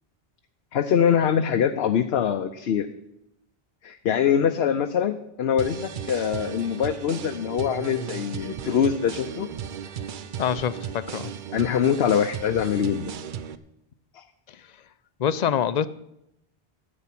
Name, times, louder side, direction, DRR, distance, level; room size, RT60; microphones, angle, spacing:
voice 1, 0.7-2.9 3.8-9.5 11.5-13.1 14.1-14.2, left 8 dB, 80° left, 7 dB, 0.9 m, -23 dB
sound 1, 5.6-13.6, right 8 dB, 60° right, 0.7 m, -36 dB
voice 2, 10.4-11.3 14.5-14.6 15.2-15.9, left 8 dB, 50° left, 15 dB, 0.6 m, -25 dB
13.0 x 8.6 x 5.9 m, 0.83 s
omnidirectional pair, 1.0 m